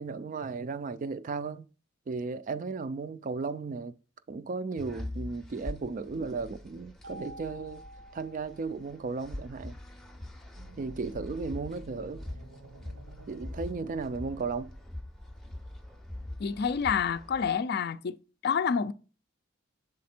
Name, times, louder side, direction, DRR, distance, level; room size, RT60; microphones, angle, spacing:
voice 1, 0.0-1.6 2.1-4.0 4.3-7.8 8.1-9.8 10.8-12.2 13.3-14.7, right 4 dB, 40° right, 0.3 m, -35 dB
sound 1, 4.8-17.5, left 1 dB, ahead, 0.6 m, -43 dB
Mallet percussion, 7.0-9.3, right 1 dB, 70° right, 0.7 m, -49 dB
sound 2, 10.6-14.8, right 3 dB, 90° right, 1.5 m, -52 dB
voice 2, 16.4-18.2 18.4-18.9, left 6 dB, 50° left, 0.4 m, -28 dB
6.5 x 4.2 x 4.3 m
head